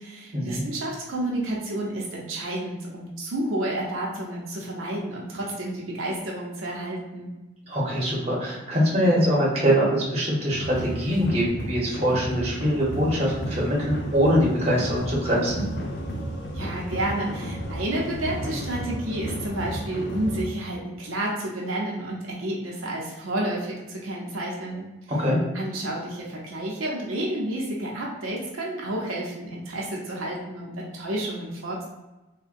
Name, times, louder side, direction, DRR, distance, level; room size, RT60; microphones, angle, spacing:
voice 1, 0.0-7.3 16.5-24.9 25.5-31.8, right 1 dB, 85° right, -2 dB, 0.7 m, -30 dB
voice 2, 7.7-15.6 25.1-25.4, equal, 30° right, -5 dB, 0.9 m, -23 dB
sound 1, 10.5-20.5, equal, 55° left, 0.5 m, -33 dB
3.5 x 2.2 x 2.5 m, 1.0 s
head